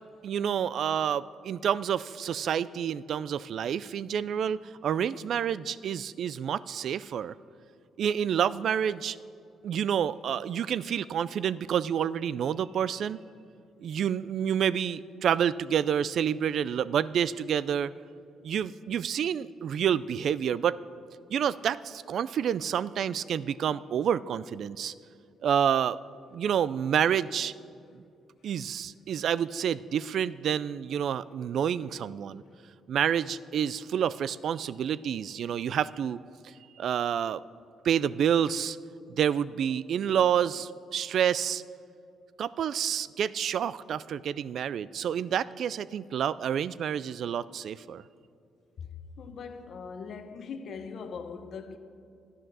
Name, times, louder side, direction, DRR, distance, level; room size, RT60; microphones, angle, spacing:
voice 1, 0.2-7.3 8.0-9.2 9.6-13.2 13.8-17.9 18.4-20.8 21.3-24.9 25.4-26.0 26.3-27.5 28.4-32.4 32.9-36.2 36.8-37.4 37.8-38.8 39.2-41.6 42.4-48.0, right 8 dB, 65° right, 0.3 m, -28 dB
voice 2, 49.2-51.8, left 5 dB, 60° left, 0.9 m, -40 dB
12.0 x 10.0 x 6.1 m
cardioid pair, 90°, 0 cm